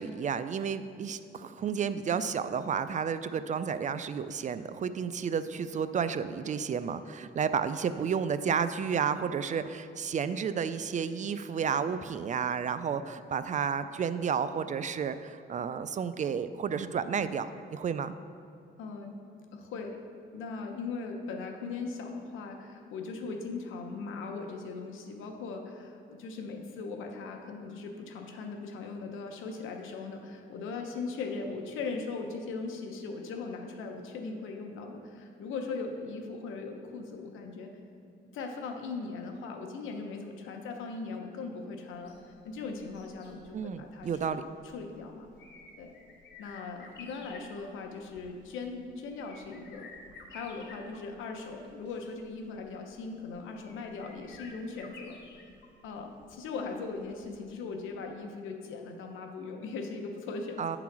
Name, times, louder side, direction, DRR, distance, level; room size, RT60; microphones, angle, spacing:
voice 1, 0.0-18.1 43.5-44.4 60.6-60.8, right 7 dB, 40° right, 12 dB, 0.4 m, -31 dB
voice 2, 18.8-19.1 19.5-20.0 20.3-37.7 38.3-42.2 42.4-44.4 44.6-45.3 45.8-45.9 46.4-49.9 50.3-55.2 55.8-60.6, left 4 dB, 85° left, 3 dB, 0.9 m, -39 dB
sound 1, 41.9-57.9 58.2-58.3, left 3 dB, 60° left, 1.2 m, -54 dB
9.3 x 3.9 x 5.9 m, 2.4 s
cardioid pair, 90°, 20 cm